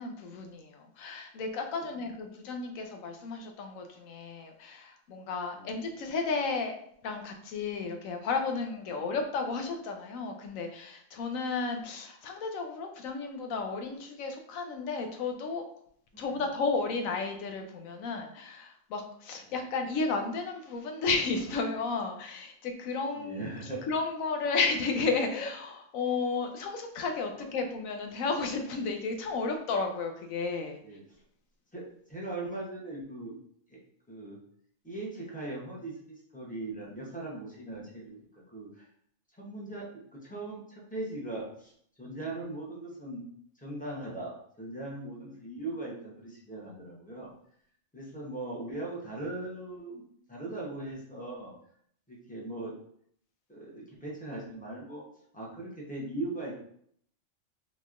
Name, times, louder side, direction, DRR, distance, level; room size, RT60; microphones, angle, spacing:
voice 1, 0.0-6.7 7.0-15.6 16.2-23.5 23.9-30.8, left 4 dB, 90° left, 4 dB, 1.0 m, -33 dB
voice 2, 5.5-5.9 9.0-9.1 16.1-16.5 23.1-23.8 27.3-27.5 30.8-31.0 31.7-31.8 32.1-33.4 33.7-33.8 34.1-34.4 34.8-38.9 39.4-41.7 42.0-43.3 43.6-47.3 47.9-50.0 50.3-51.5 52.1-52.7 53.5-55.0 55.3-56.5, right 2 dB, 10° left, -4 dB, 0.6 m, -39 dB
3.7 x 3.0 x 2.4 m, 0.65 s
omnidirectional pair, 1.4 m